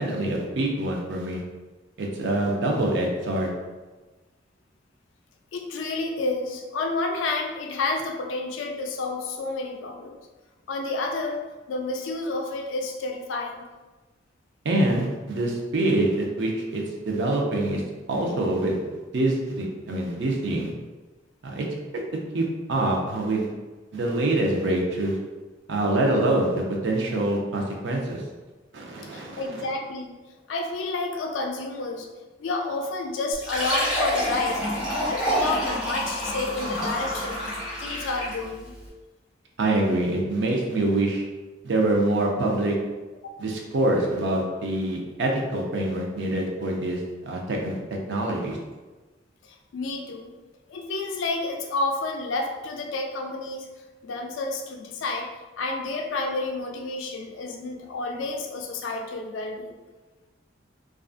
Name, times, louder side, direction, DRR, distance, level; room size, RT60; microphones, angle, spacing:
voice 1, 0.0-1.4 2.0-3.5 14.6-17.8 18.1-18.8 19.1-20.7 21.4-21.7 21.9-22.0 22.3-23.5 23.9-25.2 25.7-28.2 28.7-29.7 39.6-41.2 41.6-42.8 43.4-47.8 48.1-48.6, right 1 dB, 70° right, 0 dB, 0.5 m, -25 dB
voice 2, 5.5-10.2 10.7-13.6 29.1-30.1 30.5-32.1 32.4-34.6 35.0-37.5 37.8-38.8 49.4-50.3 50.7-53.7 54.0-55.3 55.6-59.7, left 3 dB, 85° left, 3 dB, 0.4 m, -30 dB
Fill (with liquid), 33.3-38.5, equal, 5° right, 1.0 m, -27 dB
2.5 x 2.3 x 2.4 m, 1.2 s
head